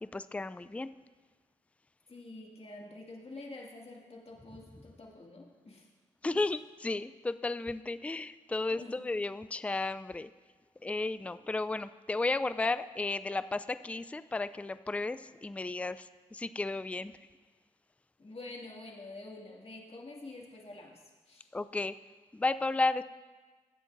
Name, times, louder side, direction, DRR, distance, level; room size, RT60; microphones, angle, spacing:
voice 1, 0.0-0.9 6.2-10.3 10.8-17.1 21.5-21.9 22.3-23.0, left 3 dB, 10° left, 14 dB, 0.3 m, -33 dB
voice 2, 2.1-5.9 6.3-6.4 8.7-9.0 18.2-21.5, left 2 dB, 45° left, -2 dB, 2.1 m, -47 dB
18.0 x 8.0 x 2.6 m, 1.3 s
supercardioid pair, 45°, 14 cm